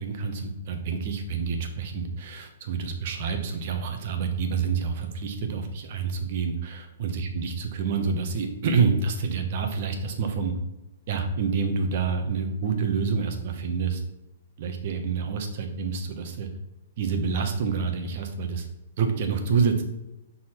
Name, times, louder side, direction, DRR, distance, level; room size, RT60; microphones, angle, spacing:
voice 1, 0.0-10.5 11.1-14.0 14.6-16.5 17.0-18.7 19.0-19.8, right 5 dB, 55° right, 5 dB, 1.2 m, -27 dB
6.1 x 4.1 x 4.5 m, 0.99 s
hypercardioid pair, 135°, 0 cm